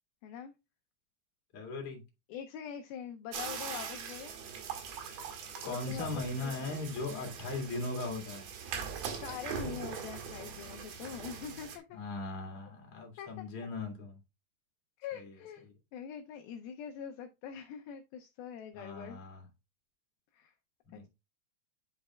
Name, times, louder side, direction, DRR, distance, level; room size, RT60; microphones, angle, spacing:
voice 1, 0.2-0.5 2.3-4.3 5.6-6.5 9.2-12.0 13.2-13.4 15.0-15.7 15.9-19.2 20.3-20.5 20.9-21.1, left 8 dB, 80° left, 2.3 m, -44 dB
voice 2, 1.5-2.0 5.6-8.5 11.9-14.2 15.2-15.3 18.8-19.5 20.9-21.1, left 2 dB, 40° left, 2.5 m, -38 dB
sound 1, 3.3-11.8, right 6 dB, 70° right, 3.4 m, -42 dB
11.0 x 5.2 x 2.3 m
omnidirectional pair, 4.8 m